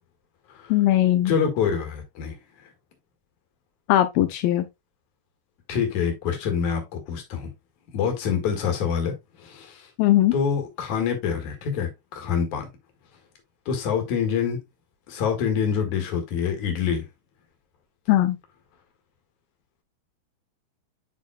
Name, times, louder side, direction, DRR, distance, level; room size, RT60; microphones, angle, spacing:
voice 1, 0.7-1.3 3.9-4.7 10.0-10.3 18.1-18.4, left 14 dB, 85° left, 2.4 m, -19 dB
voice 2, 1.3-2.3 5.7-7.5 7.9-9.1 9.4-9.9 10.3-12.7 13.7-14.6 15.1-17.1, left 7 dB, 60° left, 3.0 m, -26 dB
8.8 x 5.5 x 2.3 m
omnidirectional pair, 4.0 m